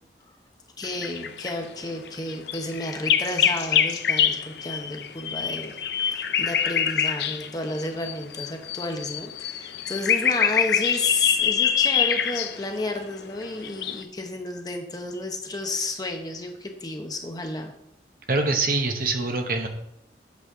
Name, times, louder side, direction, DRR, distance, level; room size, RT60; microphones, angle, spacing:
sound 1, 0.8-1.5 2.1-7.5 7.8-14.0, left 8 dB, 70° left, 0.5 m, -25 dB
voice 1, 0.8-17.7, left 2 dB, 20° left, 4 dB, 0.9 m, -31 dB
voice 2, 18.3-19.7, right 3 dB, 50° right, 4 dB, 1.0 m, -24 dB
8.3 x 4.2 x 6.0 m, 0.78 s
head